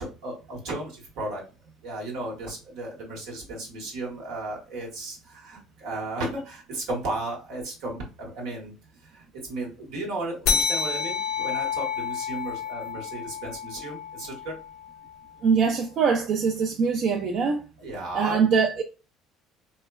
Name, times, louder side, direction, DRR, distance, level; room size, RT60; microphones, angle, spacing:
voice 1, 0.0-1.4 1.8-8.7 9.0-14.5 17.8-18.4, right 2 dB, 80° right, 1.1 m, -34 dB
sound 1, 10.5-15.4, left 6 dB, 70° left, 0.4 m, -30 dB
voice 2, 15.4-17.6 18.1-18.8, right 5 dB, 55° right, 0.4 m, -23 dB
3.1 x 2.1 x 2.2 m
supercardioid pair, 95°, 0 cm